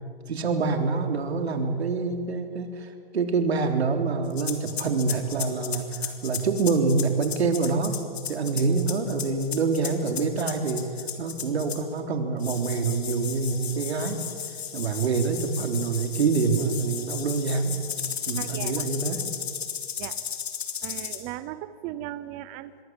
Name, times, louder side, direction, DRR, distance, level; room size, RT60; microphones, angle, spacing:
voice 1, 0.3-8.0 8.3-10.9 11.2-14.3 14.7-17.7 18.3-19.3, right 4 dB, 85° right, 5 dB, 3.6 m, -26 dB
sound 1, 4.3-12.0 12.4-21.2, left 8 dB, 80° left, 3.5 m, -34 dB
voice 2, 18.4-18.8 20.0-20.2 20.8-22.8, right 14 dB, 20° right, 13 dB, 0.6 m, -37 dB
26.5 x 21.5 x 7.6 m, 2.1 s
hypercardioid pair, 155°, 31 cm